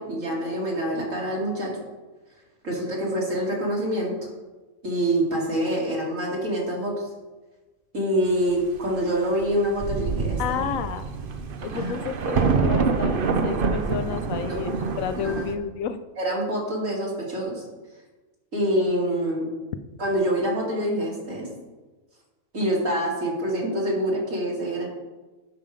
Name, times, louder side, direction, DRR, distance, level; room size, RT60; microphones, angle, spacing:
voice 1, 0.0-1.7 2.6-4.1 4.8-7.1 7.9-10.6 11.7-12.0 14.5-14.6 15.2-15.5 16.2-17.6 18.5-19.5 20.0-21.5 22.5-24.9, equal, 75° right, -3 dB, 2.9 m, -26 dB
Thunder, 9.4-9.5 9.8-15.5, right 4 dB, 50° right, 0.8 m, -26 dB
voice 2, 10.4-11.1 11.6-16.0, left 8 dB, 80° left, 12 dB, 1.1 m, -31 dB
11.5 x 5.6 x 5.0 m, 1.2 s
omnidirectional pair, 1.4 m